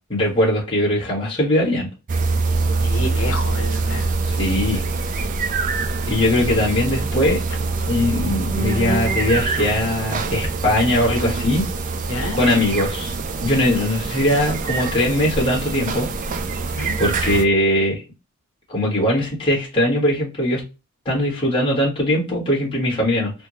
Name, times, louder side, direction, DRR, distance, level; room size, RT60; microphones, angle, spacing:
voice 1, 0.1-1.9 4.3-4.8 6.1-7.4 7.9-11.7 12.3-16.1 17.0-18.0 18.7-20.6 21.0-23.3, left 1 dB, 25° left, 1.5 m, -20 dB
sound 1, 2.1-17.4, right 3 dB, 35° right, 0.4 m, -24 dB
voice 2, 2.8-4.4 12.1-12.4 16.8-16.9, left 1 dB, 65° left, 1.2 m, -29 dB
3.4 x 2.2 x 2.9 m
head